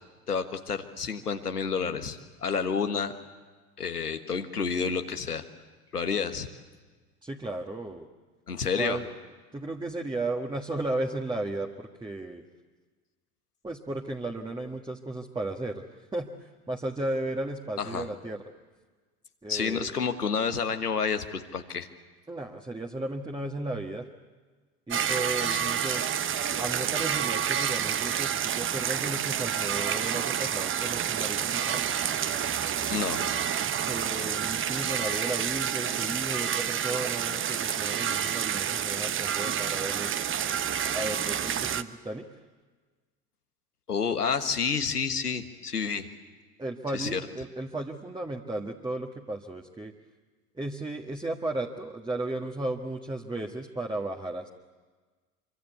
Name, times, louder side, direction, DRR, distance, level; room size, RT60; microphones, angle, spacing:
voice 1, 0.3-3.1 3.8-5.4 5.9-6.5 8.5-9.0 17.8-18.1 19.5-21.9 25.4-26.0 32.9-33.2 43.9-46.1 46.9-47.2, left 6 dB, 85° left, 8 dB, 1.5 m, -29 dB
voice 2, 7.2-8.1 8.7-9.1 9.5-12.4 13.6-15.8 16.1-18.4 19.4-19.9 22.3-24.1 24.9-26.0 26.6-31.8 33.8-40.2 40.9-42.3 46.6-49.9 50.5-54.5, right 2 dB, 10° right, 1 dB, 1.6 m, -34 dB
sound 1, 24.9-41.8, right 8 dB, 25° right, 1.0 m, -29 dB
26.0 x 24.5 x 8.3 m, 1.4 s
figure-of-eight pair, 70°, 45 cm